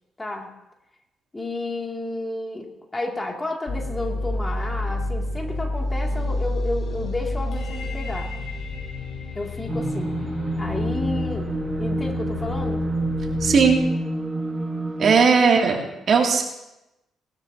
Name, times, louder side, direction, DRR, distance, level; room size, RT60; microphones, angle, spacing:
voice 1, 0.2-0.5 1.3-8.3 9.3-10.2 10.5-12.9 15.1-15.4, left 2 dB, 20° left, 1 dB, 2.3 m, -31 dB
sound 1, 3.7-13.7, left 2 dB, 65° left, 4.5 m, -29 dB
sound 2, 9.7-15.1, right 2 dB, 25° right, 1.5 m, -27 dB
voice 2, 13.4-13.8 15.0-16.4, right 5 dB, 55° right, 0 dB, 2.4 m, -18 dB
20.0 x 12.5 x 2.8 m, 0.92 s
cardioid pair, 90°, 0 cm